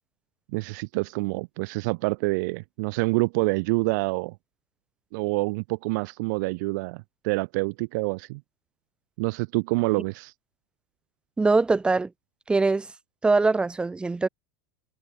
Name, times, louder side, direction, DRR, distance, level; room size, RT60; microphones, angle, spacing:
voice 1, 0.5-4.3 5.1-8.4 9.2-10.3, right 26 dB, 55° right, 1.6 m, -27 dB
voice 2, 11.4-12.1 12.5-12.9 13.2-14.3, right 3 dB, 10° right, 3.7 m, -22 dB
supercardioid pair, 160°, 11 cm